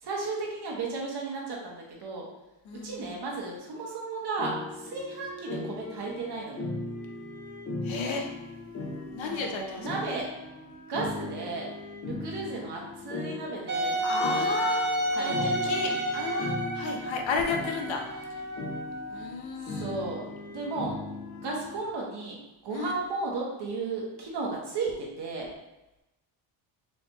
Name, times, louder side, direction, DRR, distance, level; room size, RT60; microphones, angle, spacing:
voice 1, 0.0-2.3 2.8-6.6 9.2-10.3 10.9-11.7 12.0-14.0 15.1-16.0 19.7-20.9 21.4-25.5, right 3 dB, 55° right, -2 dB, 1.1 m, -34 dB
voice 2, 2.7-3.2 7.8-8.3 9.1-9.9 14.0-18.0 19.1-20.0 22.7-22.9, left 4 dB, 70° left, 2 dB, 0.7 m, -33 dB
sound 1, 4.4-21.8, left 2 dB, 30° left, 0.6 m, -38 dB
Wind instrument woodwind instrument, 13.7-19.3, right 1 dB, 25° right, 0.4 m, -31 dB
4.6 x 2.8 x 2.2 m, 0.98 s
cardioid pair, 105°, 49 cm